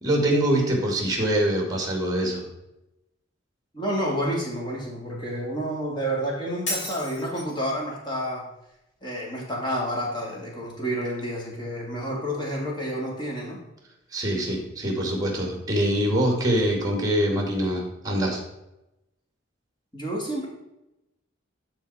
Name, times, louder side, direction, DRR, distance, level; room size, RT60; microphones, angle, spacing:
voice 1, 0.0-2.5 14.1-18.4, right 1 dB, 20° right, 2 dB, 2.1 m, -24 dB
voice 2, 3.7-8.5 9.0-13.6 19.9-20.5, equal, 25° left, -3 dB, 2.5 m, -29 dB
Shatter, 6.7-7.7, left 1 dB, 75° left, 3.3 m, -32 dB
13.0 x 4.6 x 4.2 m, 0.91 s
head